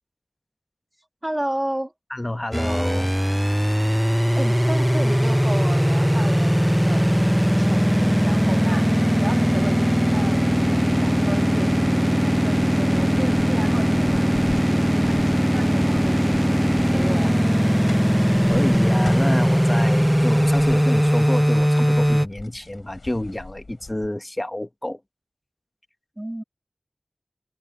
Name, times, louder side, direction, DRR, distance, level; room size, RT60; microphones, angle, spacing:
voice 1, 1.2-1.9 4.3-7.2 7.6-16.6 16.9-17.4 26.2-26.4, right 1 dB, 25° right, 2.2 m, -33 dB
voice 2, 2.1-3.1 9.4-9.7 18.5-25.0, left 1 dB, 30° left, 1.3 m, -28 dB
sound 1, 2.5-22.3, equal, 5° right, 0.5 m, -19 dB
sound 2, 9.7-24.1, left 3 dB, 85° left, 4.4 m, -42 dB
wide cardioid pair, 40°, 0 cm